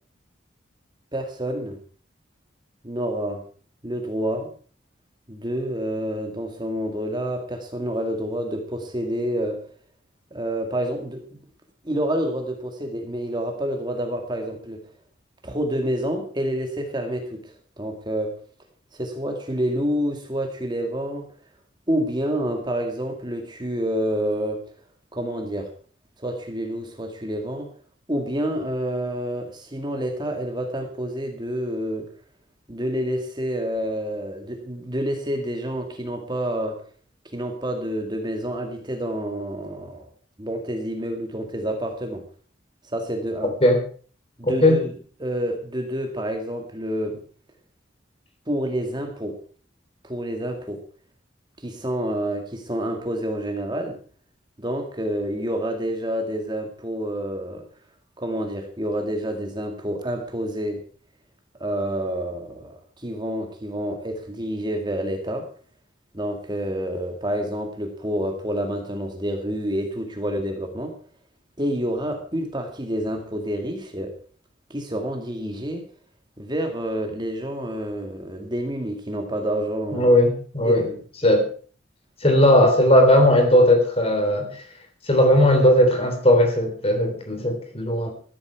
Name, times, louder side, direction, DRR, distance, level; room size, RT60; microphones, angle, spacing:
voice 1, 1.1-1.8 2.8-3.4 3.8-4.5 5.3-9.6 10.3-11.2 11.8-14.8 15.4-18.4 18.9-21.3 21.9-24.6 25.1-25.7 26.2-27.7 28.1-32.1 32.7-36.8 37.3-40.1 40.4-42.2 42.8-43.5 44.4-44.9 45.2-47.2 48.5-49.4 50.0-50.8 51.6-54.0 54.6-57.6 58.2-60.8 61.6-65.5 66.1-70.9 71.6-74.1 74.7-75.9 76.4-80.1 80.7-81.0, equal, 25° right, 4 dB, 2.1 m, -28 dB
voice 2, 44.4-44.8 79.9-80.9 81.2-81.5 82.2-84.6 85.0-88.1, left 1 dB, 30° left, 5 dB, 3.6 m, -17 dB
14.0 x 13.0 x 4.6 m, 0.43 s
head